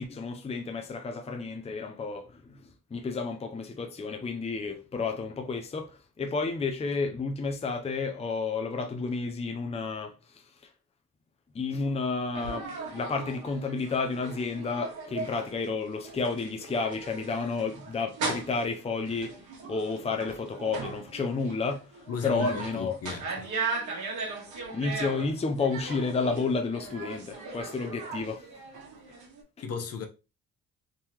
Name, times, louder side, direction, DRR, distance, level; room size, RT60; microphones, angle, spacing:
voice 1, 0.0-2.6 2.9-10.1 11.5-19.3 19.7-21.9 22.2-23.0 24.7-28.4, left 4 dB, 20° left, 0.6 m, -31 dB
sound 1, 12.3-29.4, right 4 dB, 70° right, 1.5 m, -38 dB
voice 2, 22.1-23.5 29.6-30.1, left 5 dB, 55° left, 0.8 m, -35 dB
3.7 x 2.9 x 2.9 m
cardioid pair, 90°, 30 cm